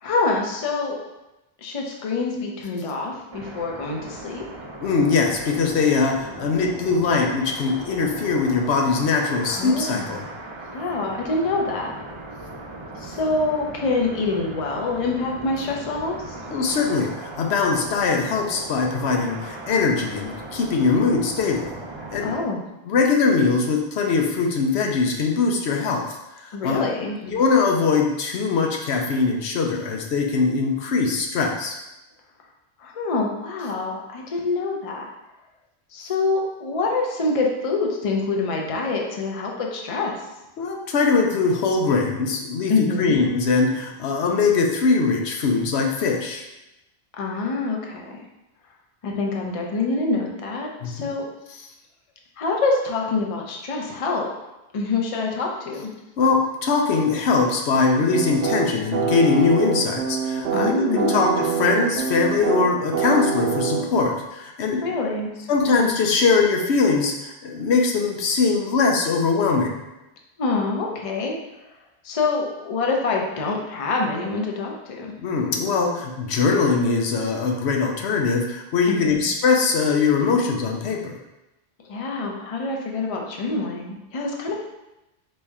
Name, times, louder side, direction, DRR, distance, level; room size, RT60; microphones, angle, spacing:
voice 1, 0.0-1.0 1.6-4.4 9.5-10.2 10.7-11.9 13.0-16.4 22.2-22.6 26.5-27.2 32.8-35.1 35.9-40.2 42.7-43.2 47.2-48.1 49.0-51.3 52.4-54.3 54.7-55.9 60.5-61.2 64.8-65.4 70.4-71.4 72.0-75.1 78.9-79.2 81.8-84.5, left 3 dB, 40° left, 0 dB, 0.6 m, -26 dB
sound 1, 3.3-22.4, right 2 dB, 40° right, 0.4 m, -38 dB
voice 2, 4.8-10.3 16.5-21.7 22.1-22.3 22.9-26.8 27.2-31.8 40.6-46.4 50.8-51.1 56.2-65.0 65.5-69.8 75.2-81.2, left 4 dB, 85° left, 1 dB, 0.9 m, -21 dB
sound 2, 58.1-64.0, right 6 dB, 70° right, 0.8 m, -25 dB
4.1 x 3.3 x 3.5 m, 0.95 s
omnidirectional pair, 1.1 m